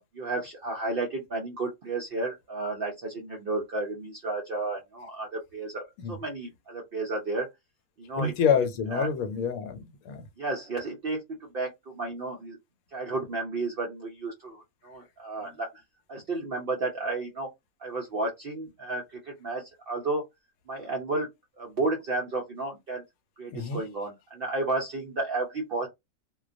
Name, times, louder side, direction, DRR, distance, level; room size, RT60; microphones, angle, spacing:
voice 1, 0.0-7.5 8.0-8.5 8.9-9.1 10.4-12.6 12.9-15.7 16.1-17.5 17.8-20.2 20.7-23.0 23.4-25.9, right 2 dB, 65° right, 0.5 m, -32 dB
voice 2, 8.2-10.2 23.5-23.8, left 6 dB, 80° left, 1.0 m, -27 dB
2.2 x 2.2 x 2.5 m
omnidirectional pair, 1.5 m